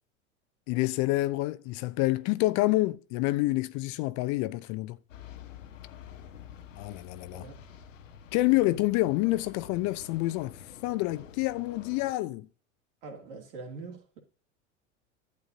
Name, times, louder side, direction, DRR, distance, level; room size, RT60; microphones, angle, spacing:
voice 1, 0.7-5.0 6.8-7.5 8.3-10.5 10.8-12.5, left 19 dB, 50° left, 0.6 m, -27 dB
sound 1, 5.1-12.1, left 8 dB, 85° left, 0.9 m, -48 dB
voice 2, 13.0-14.2, right 3 dB, 70° right, 2.7 m, -43 dB
11.5 x 8.4 x 2.7 m
hypercardioid pair, 85°, 38 cm